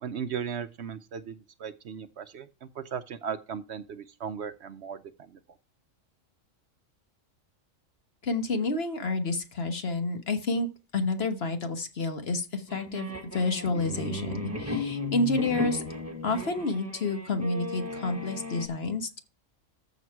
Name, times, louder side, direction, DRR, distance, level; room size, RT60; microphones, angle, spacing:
voice 1, 0.0-5.0, right 7 dB, 60° right, 12 dB, 0.9 m, -37 dB
voice 2, 8.2-15.8 16.2-19.2, left 3 dB, 50° left, 7 dB, 1.4 m, -29 dB
sound 1, 12.7-18.7, left 2 dB, 10° right, 1.3 m, -36 dB
14.0 x 5.2 x 4.6 m, 0.31 s
omnidirectional pair, 1.4 m